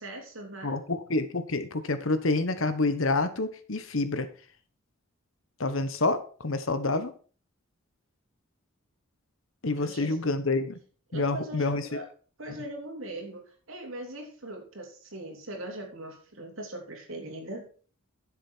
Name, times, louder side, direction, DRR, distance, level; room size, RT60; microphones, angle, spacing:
voice 1, 0.0-0.8 9.7-10.2 11.1-12.1 12.4-17.7, right 1 dB, 70° right, 2 dB, 3.1 m, -40 dB
voice 2, 0.6-4.3 5.6-7.1 9.6-10.8 11.1-11.8, left 3 dB, 70° left, 11 dB, 1.1 m, -28 dB
10.5 x 7.5 x 4.5 m, 0.39 s
head